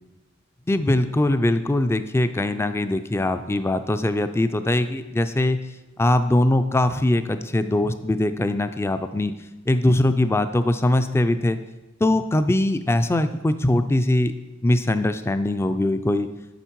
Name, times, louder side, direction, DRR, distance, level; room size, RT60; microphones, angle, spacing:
voice 1, 0.7-5.6 6.0-9.3 9.7-11.6 12.0-14.3 14.6-16.3, left 1 dB, 10° left, 11 dB, 0.3 m, -21 dB
8.0 x 5.8 x 4.6 m, 1.1 s
head